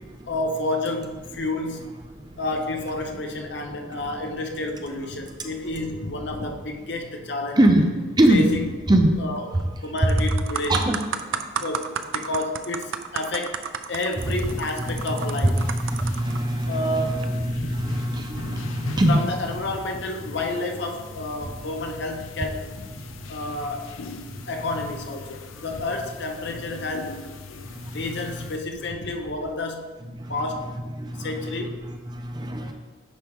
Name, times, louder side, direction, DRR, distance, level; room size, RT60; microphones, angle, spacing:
voice 1, 0.3-1.9 2.4-7.6 8.3-8.7 9.2-9.4 9.8-10.8 11.6-13.6 13.9-15.6 16.7-17.2 17.6-17.8 19.1-22.6 23.3-23.9 24.5-27.2 27.9-29.9 30.3-30.7 31.2-31.8, left 2 dB, 60° left, 3 dB, 0.8 m, -30 dB
voice 2, 7.6-7.9 8.2-8.4 8.9-9.2 9.5-9.6 10.7-11.0 14.9-19.2 27.6-28.0 30.2-30.3 31.0-31.3 31.6-32.7, right 1 dB, 20° right, 4 dB, 0.5 m, -23 dB
sound 1, 9.4-9.6 10.0-16.4 17.1-17.3, right 7 dB, 80° right, 0.4 m, -32 dB
sound 2, 14.2-28.6, left 3 dB, 90° left, 0.6 m, -40 dB
10.5 x 4.6 x 3.5 m, 1.4 s
head